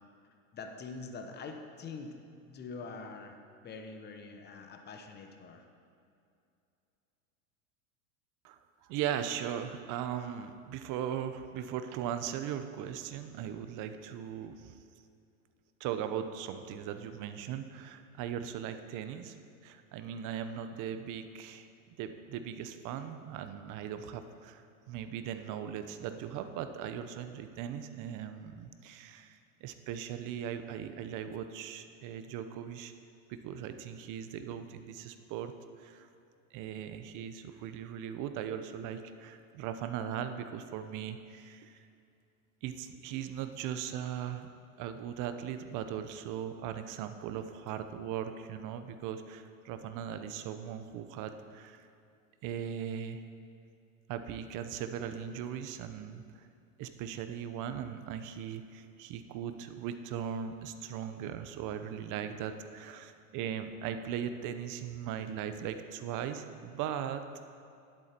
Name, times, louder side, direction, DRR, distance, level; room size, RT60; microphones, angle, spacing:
voice 1, 0.5-2.2 2.4-3.4 3.6-5.6, left 4 dB, 25° left, 5 dB, 0.9 m, -44 dB
voice 2, 8.4-14.7 15.8-19.4 19.6-21.7 22.0-32.9 33.3-35.5 35.8-36.1 36.5-41.8 42.6-44.5 44.8-51.9 52.4-53.2 54.1-56.4 56.8-67.2, right 9 dB, 45° right, 9 dB, 0.8 m, -39 dB
10.5 x 8.2 x 4.4 m, 2.5 s
supercardioid pair, 115°, 43 cm